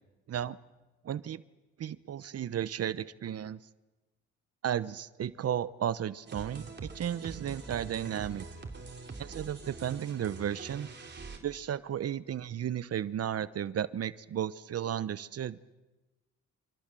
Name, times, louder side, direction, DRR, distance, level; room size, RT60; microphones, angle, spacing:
voice 1, 1.0-1.4 1.8-3.6 4.6-8.5 9.2-10.9 11.4-15.6, right 10 dB, 55° right, 16 dB, 0.9 m, -34 dB
sound 1, 6.3-11.4, right 3 dB, 35° right, 3.8 m, -44 dB
27.5 x 26.5 x 7.6 m, 1.1 s
cardioid pair, 90°, 30 cm